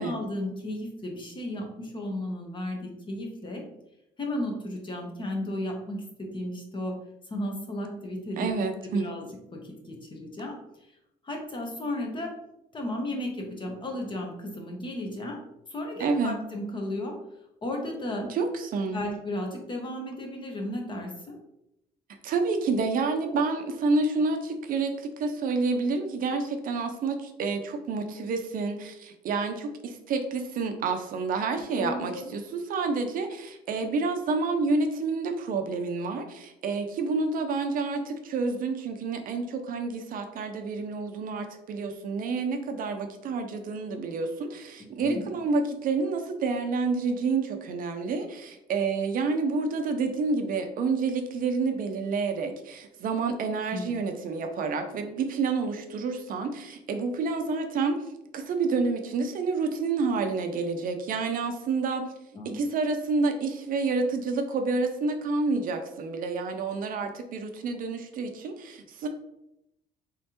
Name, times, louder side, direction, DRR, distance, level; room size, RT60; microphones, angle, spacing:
voice 1, 0.0-3.6 4.2-6.9 7.3-8.6 8.8-10.6 11.2-12.3 12.7-15.4 15.7-17.1 17.6-18.2 18.9-21.4 31.8-32.3 45.0-45.2 53.7-54.0 62.3-62.6, left 1 dB, 30° left, 1 dB, 1.0 m, -34 dB
voice 2, 8.4-9.1 16.0-16.4 18.3-19.0 22.2-58.0 58.3-62.0 62.5-69.1, right 4 dB, 55° right, 6 dB, 0.5 m, -29 dB
3.6 x 3.3 x 2.9 m, 0.85 s
cardioid pair, 110°, 17 cm